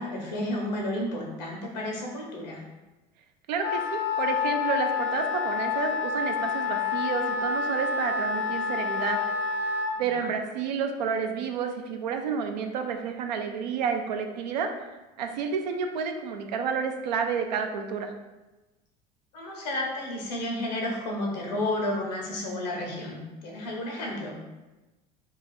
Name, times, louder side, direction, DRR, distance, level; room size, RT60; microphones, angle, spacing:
voice 1, 0.0-2.6 9.9-10.3 19.3-24.4, left 1 dB, 85° left, -1 dB, 1.0 m, -32 dB
voice 2, 3.5-9.2 10.0-14.9 15.2-18.1, right 6 dB, 85° right, 5 dB, 0.5 m, -30 dB
Wind instrument woodwind instrument, 3.6-10.0, left 5 dB, 55° left, 0.6 m, -28 dB
2.8 x 2.4 x 4.1 m, 1.1 s
hypercardioid pair, 75°, 21 cm